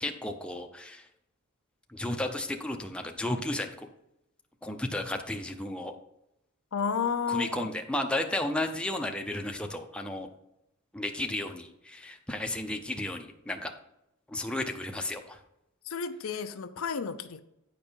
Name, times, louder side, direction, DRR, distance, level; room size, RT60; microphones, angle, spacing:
voice 1, 0.0-1.1 1.9-3.9 4.6-5.9 7.3-10.3 10.9-13.7 14.3-15.4, left 1 dB, 5° left, 0.6 m, -33 dB
voice 2, 6.7-7.7 15.9-17.4, left 6 dB, 70° left, 0.5 m, -32 dB
9.6 x 5.2 x 4.5 m
head